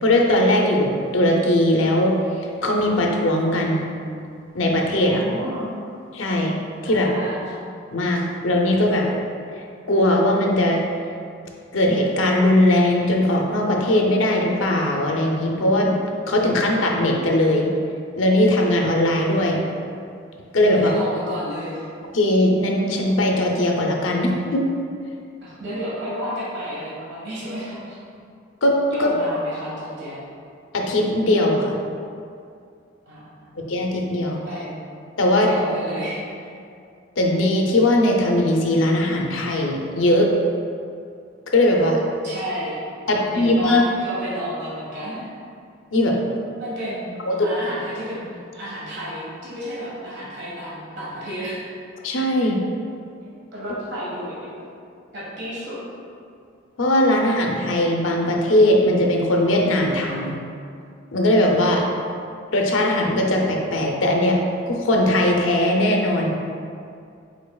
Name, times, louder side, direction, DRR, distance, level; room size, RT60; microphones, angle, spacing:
voice 1, 0.0-3.9 4.5-5.2 6.1-6.5 6.8-7.1 7.9-9.1 9.9-10.8 11.7-16.0 16.3-17.7 18.2-19.6 20.5-20.9 22.1-24.7 28.6-29.1 30.7-31.8 33.7-34.4 35.2-35.5 37.2-40.3 41.5-42.0 43.1-43.8 45.9-46.2 47.3-47.5 52.0-52.6 56.8-60.4 61.1-61.8 62.5-66.3, left 1 dB, 80° left, 0 dB, 0.6 m, -19 dB
voice 2, 5.0-5.7 6.9-7.4 20.7-21.9 25.4-28.0 28.9-30.2 33.0-33.5 34.5-34.7 35.4-36.5 42.2-42.8 43.1-45.3 46.6-51.6 53.2-54.5 55.1-55.8, equal, 60° right, -8 dB, 1.4 m, -32 dB
5.2 x 4.4 x 2.3 m, 2.4 s
head